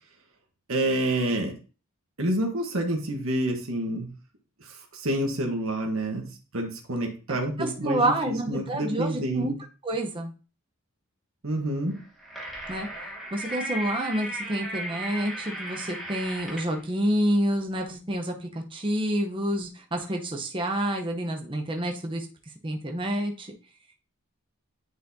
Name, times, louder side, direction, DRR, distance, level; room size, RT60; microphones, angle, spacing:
voice 1, 0.7-1.5 2.2-4.1 4.6-6.2 6.5-9.6 11.4-11.9, right 1 dB, 65° right, 1 dB, 1.2 m, -28 dB
voice 2, 7.6-9.5 9.8-10.3 12.7-12.9 13.3-22.3 22.6-23.5, right 1 dB, 20° right, 2 dB, 0.8 m, -28 dB
sound 1, 11.9-16.8, right 1 dB, ahead, 1.3 m, -36 dB
9.4 x 4.1 x 2.7 m, 0.35 s
head